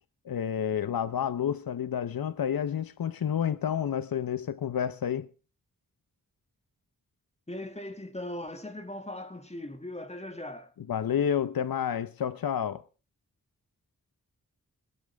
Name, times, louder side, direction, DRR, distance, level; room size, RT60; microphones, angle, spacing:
voice 1, 0.2-5.3 10.9-12.8, left 8 dB, 90° left, 0.8 m, -29 dB
voice 2, 7.5-10.7, left 1 dB, 20° left, 2.3 m, -39 dB
21.5 x 12.0 x 3.5 m
wide cardioid pair, 105°, 34 cm